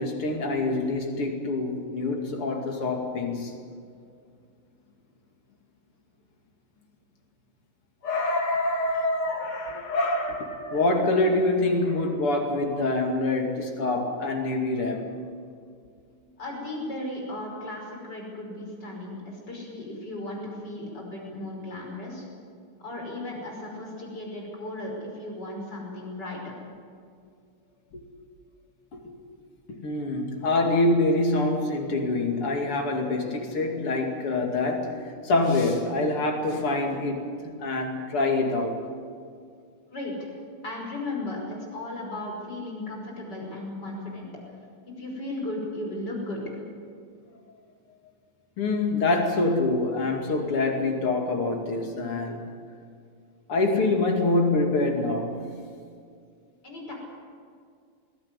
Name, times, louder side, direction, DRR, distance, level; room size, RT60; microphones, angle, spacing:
voice 1, 0.0-3.5 8.0-15.1 27.9-28.0 28.9-29.2 29.7-38.8 48.6-52.5 53.5-55.5, left 2 dB, 80° left, 3.5 m, -25 dB
voice 2, 16.4-22.3 22.8-26.4 39.9-40.4 40.6-44.3 44.9-46.6 56.6-56.9, left 1 dB, 50° left, 6.2 m, -35 dB
21.0 x 17.0 x 9.9 m
omnidirectional pair, 2.4 m